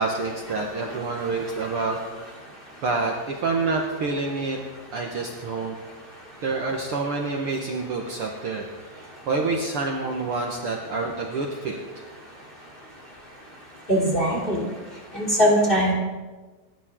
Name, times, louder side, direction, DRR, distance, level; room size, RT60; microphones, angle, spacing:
voice 1, 0.0-2.0 2.8-4.6 4.9-5.7 6.4-11.8, right 3 dB, 80° right, 1 dB, 1.2 m, -27 dB
voice 2, 13.9-14.6 15.1-15.9, equal, 15° left, -3 dB, 3.1 m, -20 dB
27.5 x 12.0 x 3.8 m, 1.3 s
omnidirectional pair, 4.6 m